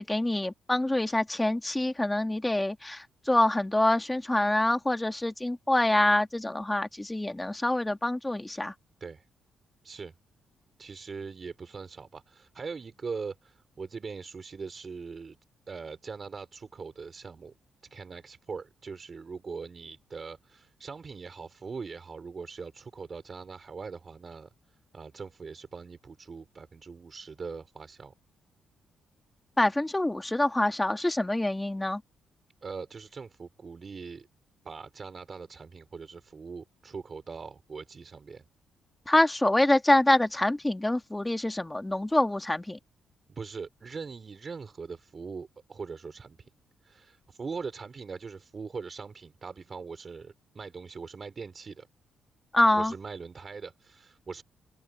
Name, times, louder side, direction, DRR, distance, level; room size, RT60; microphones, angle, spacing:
voice 1, 0.0-8.7 29.6-32.0 39.1-42.8 52.5-52.9, left 1 dB, 10° left, 1.7 m, -26 dB
voice 2, 10.8-15.4 15.7-17.5 17.9-24.5 24.9-28.1 32.6-34.3 34.6-38.4 43.3-46.5 46.8-51.9 52.7-54.4, right 5 dB, 35° right, 3.9 m, -41 dB
open air
cardioid pair, 125°, 0 cm